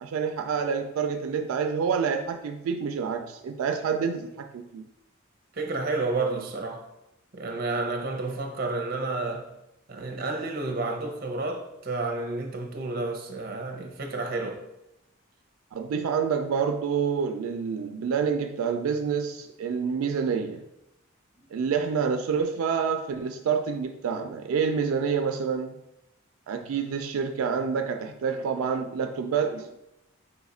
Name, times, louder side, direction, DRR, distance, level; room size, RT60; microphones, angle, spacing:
voice 1, 0.0-4.8 15.7-20.6 21.5-25.8 26.5-29.7, right 6 dB, 85° right, 0.3 m, -28 dB
voice 2, 5.5-6.9 7.3-9.5 9.9-14.6, right 3 dB, 45° right, 0.6 m, -30 dB
4.2 x 2.4 x 4.1 m
head